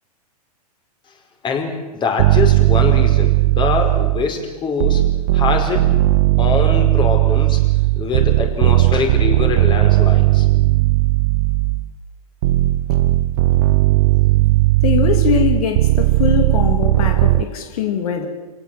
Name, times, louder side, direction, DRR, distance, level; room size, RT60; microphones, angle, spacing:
voice 1, 1.4-5.0 5.3-5.8 6.4-7.6 7.9-10.5, left 5 dB, 25° left, 3 dB, 5.1 m, -23 dB
sound 1, 2.2-4.4 4.8-11.9 12.4-17.4, right 17 dB, 55° right, 0.7 m, -16 dB
voice 2, 14.8-18.3, left 8 dB, 65° left, 5 dB, 3.0 m, -21 dB
27.5 x 18.0 x 7.8 m, 1.2 s
hypercardioid pair, 120°, 20 cm